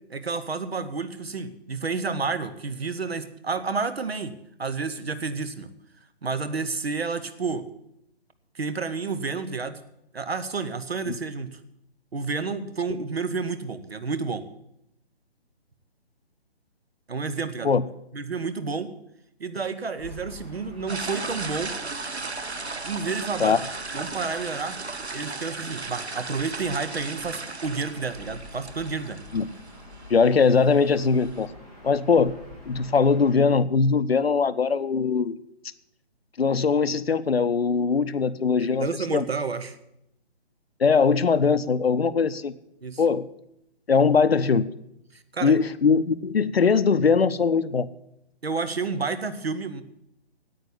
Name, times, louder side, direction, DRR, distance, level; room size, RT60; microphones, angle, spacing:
voice 1, 0.1-5.7 6.2-7.7 8.5-9.8 10.1-11.6 12.1-14.4 17.1-17.7 18.1-18.9 19.4-21.8 22.8-23.6 23.9-24.8 25.1-29.2 38.8-39.8 42.8-43.0 45.1-45.6 48.4-49.8, right 4 dB, 70° right, 12 dB, 1.2 m, -30 dB
Gull seagull / Ocean, 20.0-33.4, left 1 dB, 5° right, 0.6 m, -46 dB
sound 1, 20.9-31.5, right 3 dB, 90° right, 1.0 m, -36 dB
voice 2, 30.1-31.5 31.8-32.3 32.7-35.4 36.4-39.2 40.8-42.5 43.0-43.3 43.9-44.7 45.4-47.9, left 5 dB, 70° left, 14 dB, 0.7 m, -21 dB
9.2 x 8.8 x 9.5 m, 0.80 s
figure-of-eight pair, 145°, 32 cm